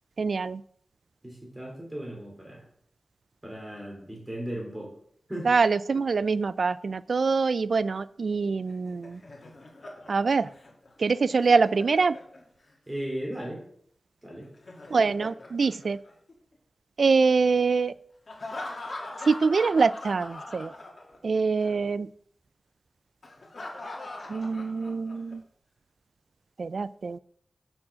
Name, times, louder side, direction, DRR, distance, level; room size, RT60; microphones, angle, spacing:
voice 1, 0.2-0.6 5.5-9.2 10.1-10.5 11.0-12.2 14.9-16.0 17.0-17.9 19.3-20.7 21.2-22.1 24.3-25.4 26.6-27.2, right 4 dB, 70° right, 18 dB, 0.3 m, -24 dB
voice 2, 1.2-2.6 3.4-4.9 5.3-5.5 12.9-13.6 14.2-14.5, right 1 dB, 15° right, -1 dB, 3.3 m, -36 dB
Laughter, 8.7-12.7 14.4-16.6 18.3-21.3 21.6-21.7 23.2-25.3, left 2 dB, 60° left, 2.3 m, -42 dB
7.6 x 6.2 x 6.1 m, 0.64 s
wide cardioid pair, 75°, 0 cm